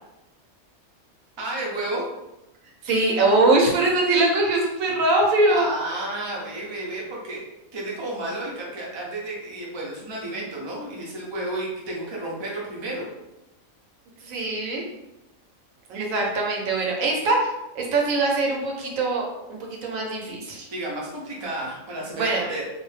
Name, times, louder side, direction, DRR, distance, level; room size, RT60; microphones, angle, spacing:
voice 1, 1.4-2.0 5.5-7.4 7.7-13.1 20.7-22.6, right 1 dB, 35° right, -4 dB, 0.4 m, -32 dB
voice 2, 2.8-5.7 14.2-14.8 15.9-17.5 17.7-19.2 19.5-20.7 22.2-22.5, right 2 dB, 85° right, -1 dB, 1.1 m, -22 dB
2.5 x 2.1 x 3.1 m, 0.95 s
omnidirectional pair, 1.4 m